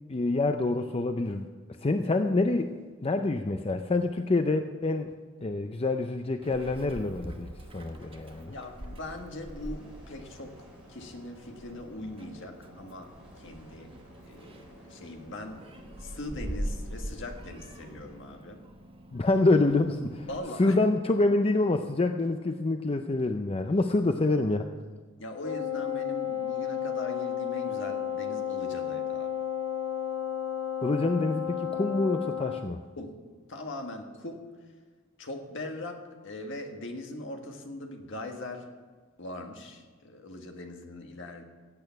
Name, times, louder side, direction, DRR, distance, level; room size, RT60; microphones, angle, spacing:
voice 1, 0.1-1.5 1.8-2.7 3.0-5.1 5.4-8.5 19.1-20.3 20.6-24.7 30.8-32.8, left 2 dB, 30° left, 7 dB, 0.5 m, -26 dB
sound 1, 6.4-18.2, equal, 5° right, 4.3 m, -53 dB
Meow, 6.4-20.4, right 1 dB, 25° right, 1.1 m, -43 dB
voice 2, 8.5-13.9 14.2-15.6 16.0-18.6 20.3-20.8 25.2-29.3 33.0-33.2 33.5-34.5 35.2-38.7 39.2-41.4, left 2 dB, 60° left, 4 dB, 1.6 m, -40 dB
Wind instrument woodwind instrument, 25.4-32.7, left 9 dB, 75° left, 1.0 m, -32 dB
15.5 x 8.6 x 5.8 m, 1.5 s
head